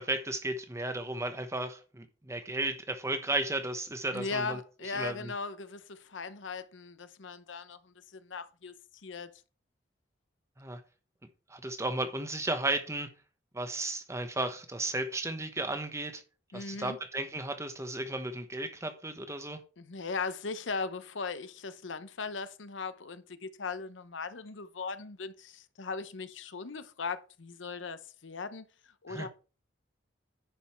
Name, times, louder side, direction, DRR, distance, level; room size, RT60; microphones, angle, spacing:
voice 1, 0.0-4.6 4.9-5.3 10.6-10.8 11.5-13.1 13.5-16.2 16.5-19.6 29.1-29.3, right 2 dB, 15° right, 1.1 m, -34 dB
voice 2, 4.1-8.7 9.0-9.3 16.5-17.0 19.8-28.7 29.0-29.3, left 4 dB, 75° left, 0.8 m, -38 dB
10.5 x 5.3 x 4.4 m
head